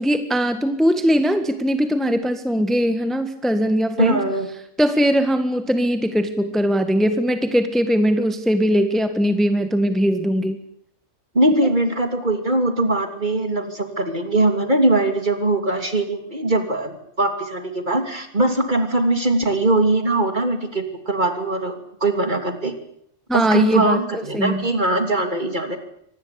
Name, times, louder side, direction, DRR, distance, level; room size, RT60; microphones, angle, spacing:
voice 1, 0.0-4.2 4.8-10.6 23.3-24.6, equal, ahead, 8 dB, 1.7 m, -20 dB
voice 2, 4.0-4.5 11.3-22.7 23.3-25.8, right 2 dB, 40° right, 7 dB, 3.1 m, -21 dB
25.0 x 19.5 x 8.6 m, 0.68 s
omnidirectional pair, 1.3 m